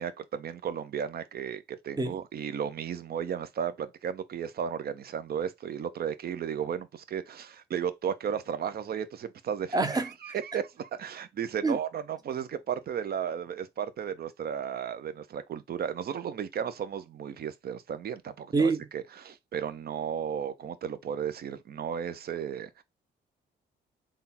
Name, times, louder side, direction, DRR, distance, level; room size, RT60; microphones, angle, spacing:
voice 1, 0.0-22.8, right 8 dB, 50° right, 0.6 m, -34 dB
voice 2, 9.7-10.1 11.6-11.8 18.5-18.8, right 3 dB, 20° right, 0.8 m, -25 dB
3.7 x 2.4 x 4.2 m
cardioid pair, 90°, 20 cm